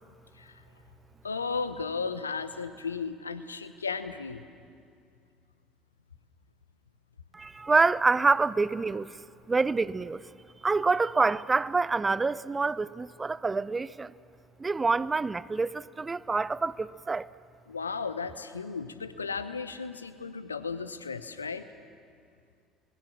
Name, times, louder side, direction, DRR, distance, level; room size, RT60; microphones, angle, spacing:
voice 1, 1.2-4.4 17.7-21.6, left 5 dB, 85° left, 0.8 m, -35 dB
voice 2, 7.3-9.2 9.5-10.2 10.6-14.1 14.6-17.3, right 4 dB, 20° right, 0.6 m, -26 dB
23.0 x 20.0 x 7.5 m
figure-of-eight pair, 60°, 0 cm